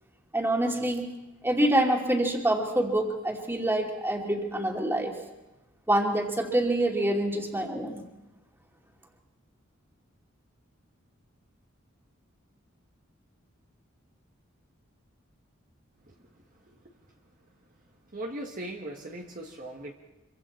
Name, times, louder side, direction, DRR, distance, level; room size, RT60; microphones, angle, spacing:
voice 1, 0.3-1.1 1.4-5.1 5.9-8.0, right 1 dB, 10° right, 1 dB, 2.6 m, -26 dB
voice 2, 18.1-19.9, right 1 dB, 40° right, 1 dB, 1.5 m, -38 dB
26.0 x 24.0 x 4.3 m, 1.0 s
head